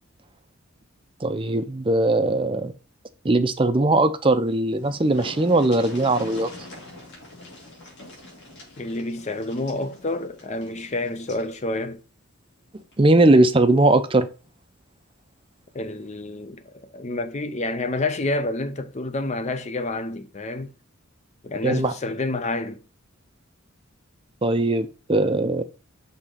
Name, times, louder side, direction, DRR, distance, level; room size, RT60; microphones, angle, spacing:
voice 1, 1.2-2.7 3.2-6.5 13.0-14.3 21.6-21.9 24.4-25.6, right 2 dB, 25° right, 0.6 m, -19 dB
sound 1, 4.4-4.5 4.7-11.5 12.8-12.9 13.3-13.4, left 2 dB, 55° left, 2.4 m, -42 dB
voice 2, 8.8-12.0 15.7-20.7 21.4-22.8, left 2 dB, 35° left, 0.6 m, -29 dB
5.8 x 3.6 x 4.9 m
head